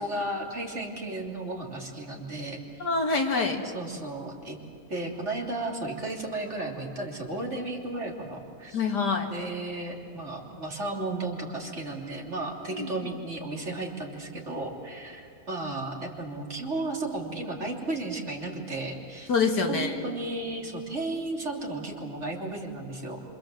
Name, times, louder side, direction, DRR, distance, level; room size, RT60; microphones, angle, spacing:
voice 1, 0.0-2.9 3.3-4.6 4.9-8.8 9.3-19.3 19.7-23.2, right 2 dB, 45° right, 0 dB, 3.5 m, -34 dB
voice 2, 2.8-3.6 8.7-9.3 12.7-12.9 19.3-19.9, left 4 dB, 90° left, 2 dB, 3.1 m, -25 dB
27.5 x 27.0 x 7.8 m, 2.4 s
omnidirectional pair, 1.7 m